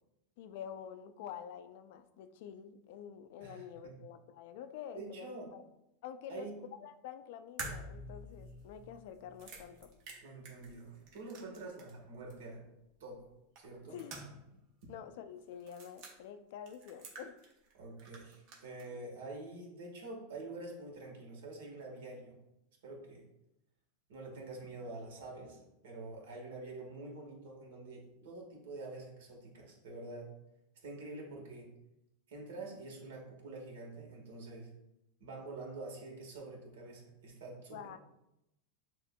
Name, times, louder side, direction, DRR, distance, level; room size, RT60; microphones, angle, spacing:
voice 1, 0.4-5.6 6.0-6.5 6.8-9.9 11.6-11.7 13.9-14.2 14.9-17.4 37.7-38.0, left 9 dB, 65° left, 10 dB, 0.3 m, -48 dB
voice 2, 3.4-3.9 4.9-5.5 6.3-6.6 10.2-12.7 13.0-13.2 13.6-14.0 17.7-22.4 22.8-23.2 24.1-30.3 30.8-31.7 32.3-34.7 35.2-38.0, right 2 dB, 80° right, -1 dB, 1.3 m, -47 dB
sound 1, 7.6-12.0 12.3-12.4 13.6-14.6 14.8-14.9 15.6-16.1 16.7-17.7 18.0-18.9, right 2 dB, 55° right, 1.0 m, -48 dB
6.4 x 2.5 x 2.2 m, 0.86 s
supercardioid pair, 125°, 0 cm